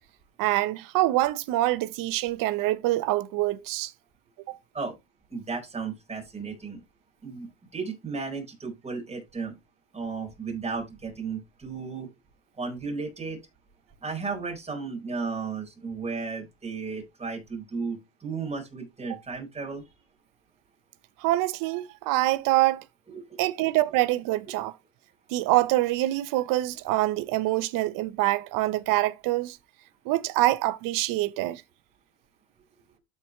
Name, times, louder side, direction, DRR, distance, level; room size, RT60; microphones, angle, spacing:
voice 1, 0.4-3.9 4.5-4.6 21.2-22.8 23.4-24.7 25.3-29.6 30.1-31.6, right 17 dB, 55° right, 0.9 m, -25 dB
voice 2, 5.3-6.8 7.2-9.6 9.9-12.1 12.6-13.4 14.0-19.8 23.1-23.7, right 4 dB, 15° right, 4.5 m, -34 dB
13.0 x 4.7 x 3.1 m
supercardioid pair, 120°, 38 cm